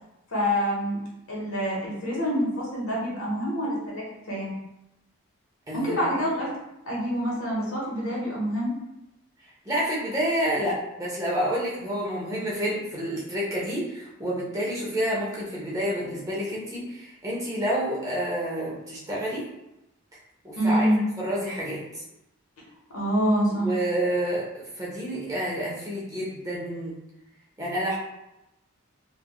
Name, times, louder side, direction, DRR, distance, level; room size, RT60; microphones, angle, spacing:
voice 1, 0.3-1.0 1.3-4.5 5.7-6.5 6.8-8.7 20.6-21.0 22.9-23.7, equal, 70° left, -4 dB, 1.0 m, -26 dB
voice 2, 9.7-19.5 20.4-20.9 21.2-22.0 23.6-24.5 24.8-26.9 27.6-28.0, equal, 15° right, -5 dB, 0.6 m, -29 dB
3.1 x 2.4 x 2.3 m, 0.89 s
head